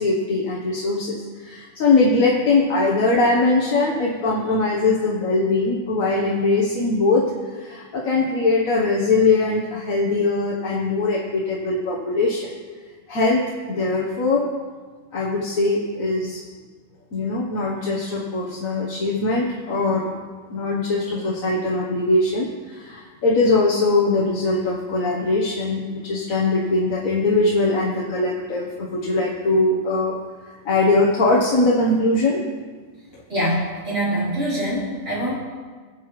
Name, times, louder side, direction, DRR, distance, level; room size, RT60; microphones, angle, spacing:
voice 1, 0.0-12.5 13.1-14.5 15.1-16.4 17.1-20.1 20.5-30.1 30.4-32.4, left 3 dB, 80° left, -3 dB, 1.6 m, -21 dB
voice 2, 33.3-35.3, right 1 dB, 65° right, -10 dB, 4.3 m, -24 dB
20.0 x 7.5 x 3.1 m, 1.5 s
omnidirectional pair, 1.4 m